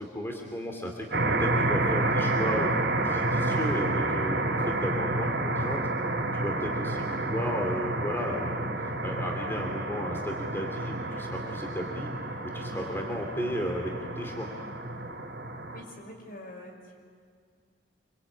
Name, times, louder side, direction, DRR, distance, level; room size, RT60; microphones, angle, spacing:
voice 1, 0.0-2.7 3.0-5.8 6.3-12.1 12.4-14.5, equal, 15° left, 1 dB, 2.7 m, -34 dB
sound 1, 1.1-15.8, right 2 dB, 70° right, 3.0 m, -29 dB
voice 2, 15.7-17.0, equal, 55° left, 2 dB, 5.6 m, -46 dB
26.5 x 24.5 x 8.6 m, 2.1 s
head